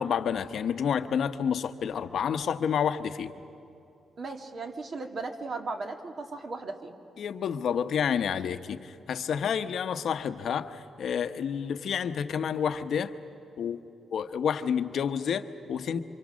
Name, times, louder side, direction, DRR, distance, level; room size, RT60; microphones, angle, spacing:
voice 1, 0.0-3.3 7.2-13.1 13.6-13.8 14.1-16.0, left 7 dB, 70° left, 10 dB, 1.0 m, -29 dB
voice 2, 4.2-7.0, right 3 dB, 50° right, 4 dB, 2.2 m, -36 dB
27.5 x 25.5 x 6.3 m, 2.7 s
cardioid pair, 120°, 0 cm